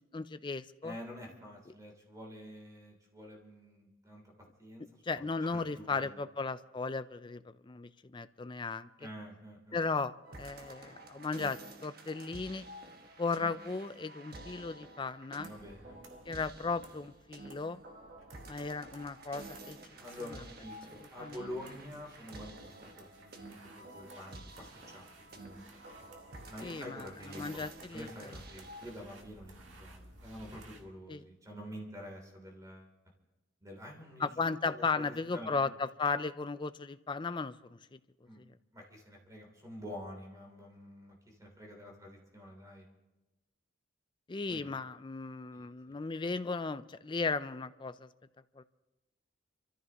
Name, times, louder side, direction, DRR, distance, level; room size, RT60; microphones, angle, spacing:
voice 1, 0.0-0.9 5.0-9.1 9.7-12.6 13.2-15.5 16.3-17.8 18.5-19.8 21.0-21.4 26.6-28.1 31.1-31.2 34.2-37.6 37.9-38.0 38.4-38.5 44.3-48.1 48.6-48.7, left 4 dB, 25° left, 13 dB, 0.4 m, -36 dB
voice 2, 0.8-4.2 4.6-4.8 5.5-6.2 9.0-9.8 15.4-16.0 20.0-25.6 26.5-27.6 27.9-32.9 33.6-35.7 38.3-38.4 38.7-42.8 44.5-44.7 45.5-45.6, equal, 15° right, 0 dB, 3.1 m, -47 dB
sound 1, 10.2-28.9, right 2 dB, 50° right, 1.4 m, -50 dB
sound 2, 15.4-30.8, right 2 dB, 70° right, 1.8 m, -58 dB
28.5 x 14.0 x 3.0 m, 1.0 s
head